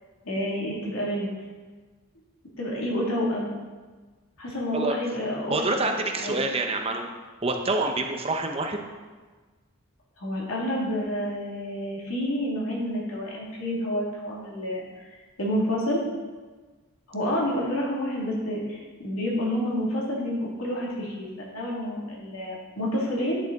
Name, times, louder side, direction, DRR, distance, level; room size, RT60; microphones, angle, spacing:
voice 1, 0.2-1.3 2.6-3.5 4.4-5.8 6.2-6.3 10.2-16.0 17.1-23.4, equal, 90° left, -5 dB, 2.7 m, -29 dB
voice 2, 5.5-7.1 7.4-8.8, right 2 dB, 30° right, 4 dB, 0.8 m, -26 dB
10.0 x 6.9 x 4.1 m, 1.4 s
head